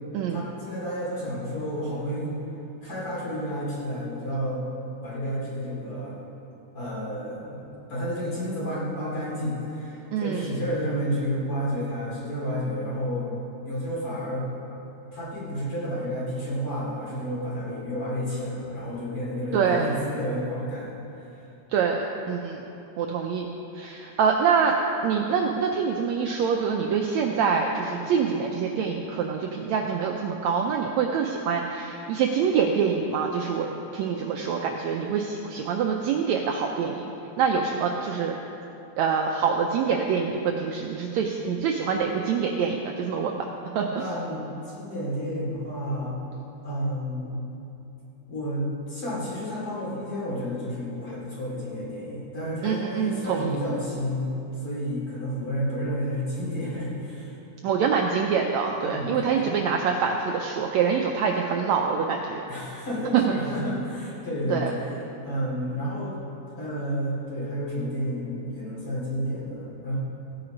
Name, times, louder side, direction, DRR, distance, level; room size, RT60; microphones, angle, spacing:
voice 1, 0.3-2.3 2.8-4.6 5.0-6.1 6.7-13.4 13.6-14.5 15.1-20.9 21.3-21.4 44.0-46.2 46.6-47.4 48.3-54.3 54.6-57.4 58.7-59.6 62.5-66.2 66.6-70.0, equal, 40° left, -7 dB, 3.8 m, -31 dB
voice 2, 10.1-10.5 19.5-19.9 21.7-22.6 23.0-23.5 23.7-24.8 25.0-33.7 33.9-37.1 37.4-38.3 39.0-44.0 52.6-53.5 57.6-62.4 63.1-63.2 64.5-64.7, right 6 dB, 90° right, 1 dB, 1.5 m, -25 dB
17.0 x 8.9 x 5.2 m, 2.9 s
omnidirectional pair, 4.1 m